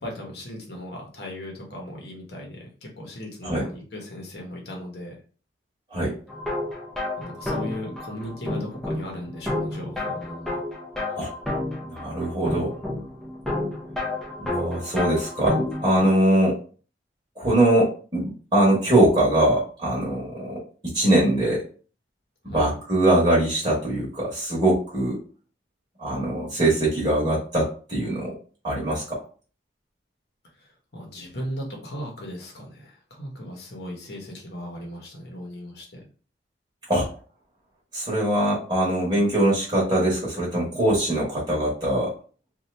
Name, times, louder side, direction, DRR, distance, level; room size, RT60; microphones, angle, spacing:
voice 1, 0.0-5.2 7.2-10.7 22.5-22.7 30.6-30.7 30.9-36.0, equal, 60° left, -1 dB, 1.0 m, -37 dB
sound 1, 6.3-16.1, left 2 dB, ahead, 0.5 m, -31 dB
voice 2, 11.8-12.7 14.4-16.6 17.4-21.6 22.5-25.2 26.0-28.3 28.6-29.2 36.9-37.1 37.9-42.1, right 1 dB, 25° right, -5 dB, 1.0 m, -22 dB
2.7 x 2.4 x 3.2 m, 0.39 s
head